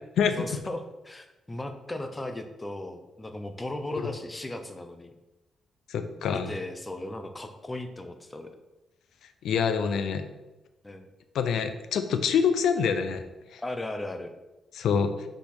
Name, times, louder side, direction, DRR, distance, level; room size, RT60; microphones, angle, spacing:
voice 1, 0.4-5.1 6.3-8.5 10.8-11.1 13.6-14.3, left 1 dB, 15° left, 7 dB, 0.6 m, -36 dB
voice 2, 5.9-6.5 9.4-10.3 11.3-13.2 13.5-13.6 14.7-15.1, left 6 dB, 75° left, 9 dB, 0.6 m, -26 dB
5.9 x 4.2 x 5.9 m, 1.0 s
cardioid pair, 155°, 0 cm